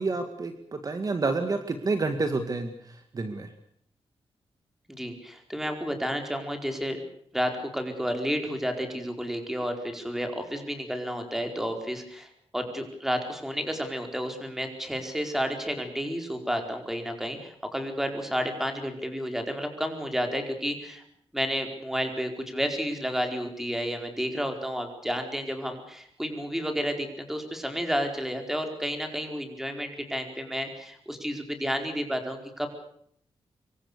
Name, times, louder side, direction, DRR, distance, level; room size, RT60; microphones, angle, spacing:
voice 1, 0.0-3.5, right 3 dB, 35° right, 7 dB, 2.2 m, -29 dB
voice 2, 4.9-7.0 7.3-21.0 21.3-32.7, equal, 5° right, 5 dB, 4.7 m, -31 dB
26.5 x 24.0 x 6.9 m, 0.65 s
wide cardioid pair, 155°, 10 cm